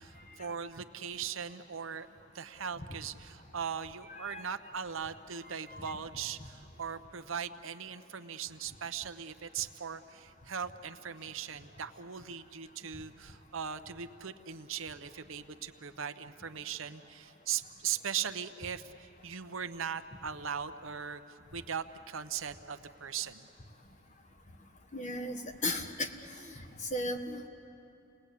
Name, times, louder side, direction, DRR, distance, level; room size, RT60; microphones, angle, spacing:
voice 1, 0.0-2.1 2.3-23.5, right 7 dB, 70° right, 10 dB, 0.8 m, -39 dB
voice 2, 4.1-4.5 5.7-5.9 24.9-26.1 26.4-27.5, left 1 dB, 35° left, 5 dB, 1.4 m, -36 dB
29.0 x 20.0 x 8.4 m, 2.8 s
head